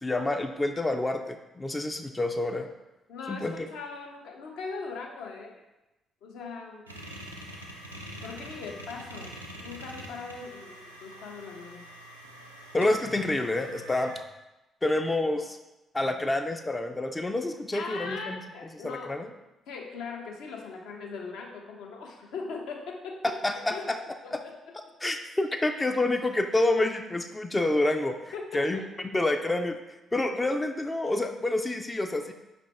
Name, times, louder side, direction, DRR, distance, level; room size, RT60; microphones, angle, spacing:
voice 1, 0.0-2.7 3.3-3.7 12.7-14.2 14.8-15.6 15.9-18.4 18.8-19.3 23.4-24.0 24.3-24.4 25.0-28.2 28.5-28.8 29.1-29.8 30.1-32.3, left 2 dB, 20° left, 5 dB, 0.3 m, -28 dB
voice 2, 3.1-5.6 6.2-6.9 8.2-11.8 17.7-19.2 19.7-23.3 23.7-23.9 24.2-24.7 28.3-29.1, left 4 dB, 65° left, 0 dB, 0.6 m, -40 dB
sound 1, 6.9-14.2, equal, 90° right, 0.3 m, -44 dB
5.1 x 2.5 x 3.2 m, 0.99 s
figure-of-eight pair, 40°, 0 cm